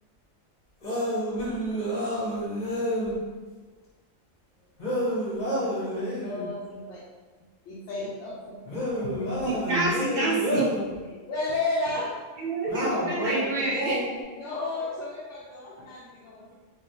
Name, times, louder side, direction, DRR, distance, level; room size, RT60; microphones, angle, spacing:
sound 1, 0.8-3.2 4.8-6.5 8.7-10.9 12.7-14.2, equal, 35° left, 0.9 m, -29 dB
voice 1, 5.1-7.1 7.7-9.3 11.1-12.2 14.4-16.5, left 2 dB, 70° left, -7 dB, 0.9 m, -34 dB
voice 2, 9.4-10.7 12.4-14.0, right 3 dB, 60° right, -5 dB, 0.6 m, -27 dB
3.1 x 2.6 x 2.6 m, 1.3 s
omnidirectional pair, 1.4 m